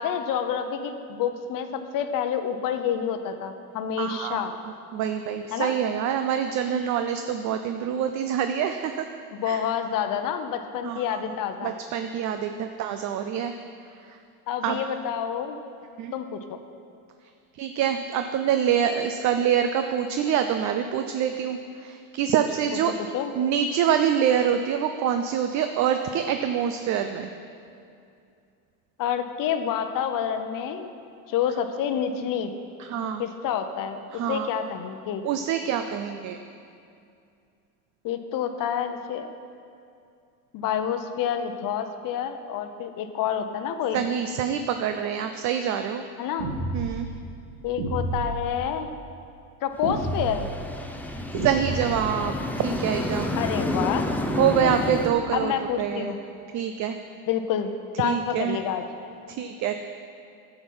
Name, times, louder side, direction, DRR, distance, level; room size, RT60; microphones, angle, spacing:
voice 1, 0.0-4.5 5.5-5.7 9.3-11.7 14.5-15.6 16.1-16.6 23.1-23.3 29.0-30.9 31.3-32.5 33.2-34.0 34.3-35.2 38.0-39.3 40.5-44.0 46.2-46.5 47.6-48.9 49.6-50.5 53.3-54.1 54.6-54.9 55.3-56.2 57.3-57.7 58.0-58.8, left 8 dB, 50° left, 8 dB, 0.8 m, -28 dB
voice 2, 4.0-4.5 4.9-9.0 9.4-9.6 10.8-11.4 11.6-13.5 14.1-14.2 14.6-14.8 16.0-16.1 17.6-22.9 23.4-27.3 32.8-33.2 34.1-34.5 35.2-36.4 43.9-46.0 46.7-47.1 51.4-53.4 54.4-55.5 55.8-56.2 56.5-57.0 58.0-58.6 59.4-59.7, right 8 dB, 45° right, 7 dB, 0.5 m, -26 dB
sound 1, 46.4-46.9 47.8-48.3 49.8-50.4 51.3-52.0, right 2 dB, 70° right, 2.1 m, -29 dB
sound 2, 49.8-55.1, left 1 dB, 5° left, 0.6 m, -29 dB
10.0 x 8.0 x 5.5 m, 2.5 s
supercardioid pair, 115°, 42 cm